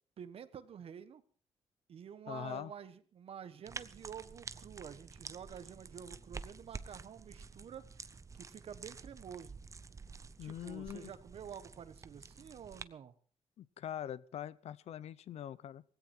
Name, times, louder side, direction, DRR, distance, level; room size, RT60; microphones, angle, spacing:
voice 1, 0.2-1.2 1.9-7.8 8.3-9.6 10.4-13.1, right 8 dB, 65° right, 13 dB, 1.3 m, -49 dB
voice 2, 2.3-2.7 10.4-11.1 13.6-15.8, left 10 dB, 75° left, 19 dB, 0.7 m, -43 dB
sound 1, 3.7-12.8, right 4 dB, 30° right, 0.8 m, -49 dB
18.0 x 16.5 x 4.4 m, 0.43 s
cardioid pair, 120°, 11 cm